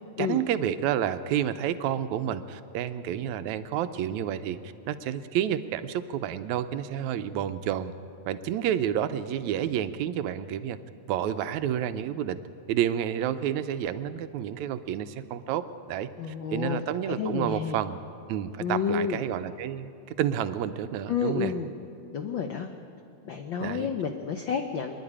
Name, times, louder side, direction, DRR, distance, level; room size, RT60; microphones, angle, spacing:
voice 1, 0.2-7.9 8.3-10.8 11.1-12.4 12.7-16.1 16.5-18.0 18.3-19.9 20.2-21.5 23.6-23.9, right 10 dB, 80° right, 11 dB, 2.0 m, -29 dB
voice 2, 16.2-16.8 17.1-17.8 18.6-19.2 21.1-21.7 22.1-22.7 23.2-24.9, left 6 dB, 80° left, 5 dB, 1.1 m, -30 dB
25.0 x 11.0 x 9.9 m, 2.5 s
omnidirectional pair, 3.3 m